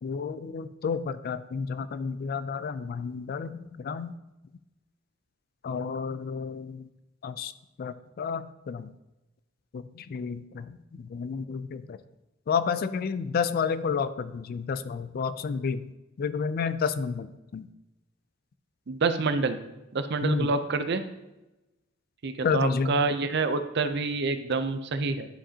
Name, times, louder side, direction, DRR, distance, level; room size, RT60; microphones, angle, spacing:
voice 1, 0.0-4.1 5.6-6.9 7.2-7.5 7.8-8.9 9.7-12.0 12.5-15.9 16.2-17.7 20.2-20.5 22.4-23.0, left 5 dB, 50° left, 14 dB, 0.3 m, -31 dB
voice 2, 18.9-19.6 19.9-21.0 22.2-25.3, right 4 dB, 60° right, 10 dB, 0.5 m, -27 dB
10.0 x 5.0 x 2.8 m, 0.98 s
head